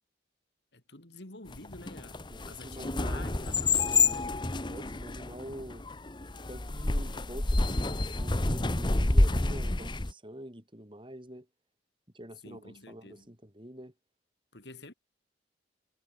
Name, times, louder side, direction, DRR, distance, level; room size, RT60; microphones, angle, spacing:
voice 1, 0.7-4.3 12.4-13.3 14.5-14.9, left 2 dB, 70° left, 3.5 m, -49 dB
sound 1, 1.5-10.1, left 3 dB, 25° left, 1.0 m, -28 dB
voice 2, 2.3-3.4 4.6-5.9 6.5-11.5 12.1-13.9, equal, 30° right, 6.4 m, -46 dB
head